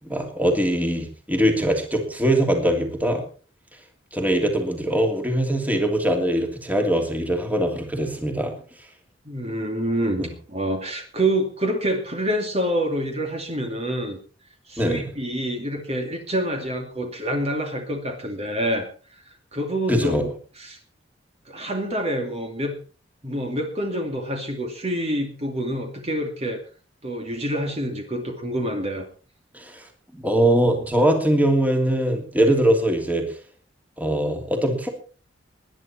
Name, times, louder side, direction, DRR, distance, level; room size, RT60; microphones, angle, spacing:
voice 1, 0.0-3.2 4.1-8.5 10.2-10.3 14.8-15.1 19.9-20.2 29.5-29.8 30.1-33.2 34.0-34.9, right 1 dB, 10° right, 4 dB, 2.9 m, -22 dB
voice 2, 9.2-14.2 14.7-18.9 19.5-20.3 20.6-20.8 21.5-22.8 23.2-26.6 27.0-29.1, right 1 dB, 35° right, 3 dB, 2.6 m, -27 dB
20.0 x 10.5 x 4.4 m, 0.38 s
head